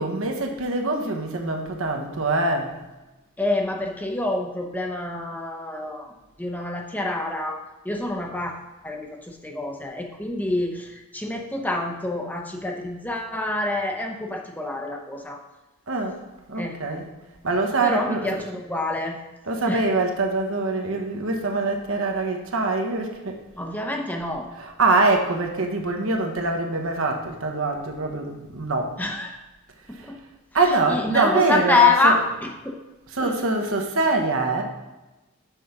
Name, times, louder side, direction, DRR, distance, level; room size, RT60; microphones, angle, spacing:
voice 1, 0.0-2.7 15.9-16.2 16.5-17.1 17.4-18.5 19.4-23.4 24.5-29.0 29.9-30.0 30.5-32.1 33.1-34.6, right 3 dB, 70° right, 3 dB, 1.1 m, -24 dB
voice 2, 3.4-6.1 6.4-7.6 7.8-15.4 16.6-16.8 17.8-19.2 19.7-19.8 23.6-24.5 29.0-29.4 29.9-30.2 30.9-32.2 32.4-32.7 33.2-33.3, left 2 dB, 10° left, 2 dB, 0.7 m, -26 dB
6.4 x 5.0 x 5.9 m, 1.1 s
head